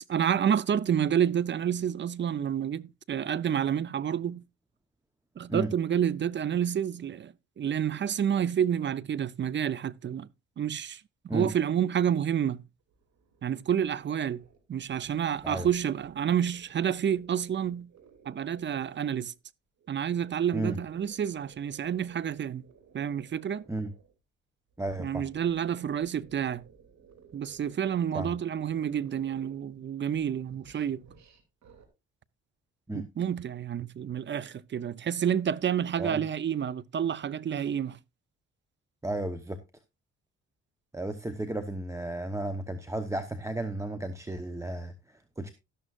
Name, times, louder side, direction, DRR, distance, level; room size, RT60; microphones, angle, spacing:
voice 1, 0.0-4.4 5.4-10.3 10.6-11.0 11.3-12.6 13.4-14.4 14.7-17.9 18.3-19.3 19.9-22.6 22.9-23.6 25.0-26.6 27.3-31.0 32.9-38.0, right 9 dB, 40° right, 0.5 m, -29 dB
sound 1, 12.8-19.3 19.8-24.1 24.7-29.9 30.1-31.9, right 6 dB, 65° right, 2.8 m, -58 dB
voice 2, 24.8-25.3 28.1-28.3 32.9-33.1 36.0-36.2 39.0-39.6 40.9-45.5, right 1 dB, 10° right, 1.0 m, -33 dB
12.5 x 11.0 x 2.5 m
cardioid pair, 90°, 30 cm